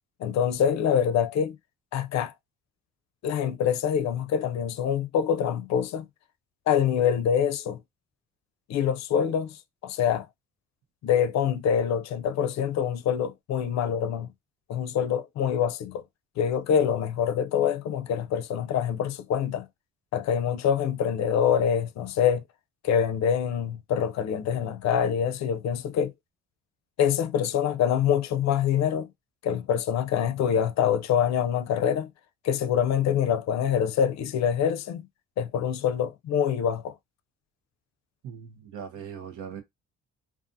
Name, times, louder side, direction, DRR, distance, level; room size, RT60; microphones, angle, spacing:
voice 1, 0.2-1.6 1.9-2.3 3.2-6.1 6.7-7.8 8.7-10.3 11.0-14.3 14.7-16.0 16.4-19.7 20.1-22.4 22.8-26.1 27.0-29.1 29.4-32.1 32.4-35.1 35.4-36.9, left 8 dB, 65° left, 0.5 m, -25 dB
voice 2, 38.2-39.6, right 7 dB, 85° right, 0.8 m, -40 dB
2.5 x 2.4 x 2.6 m
cardioid pair, 90°, 30 cm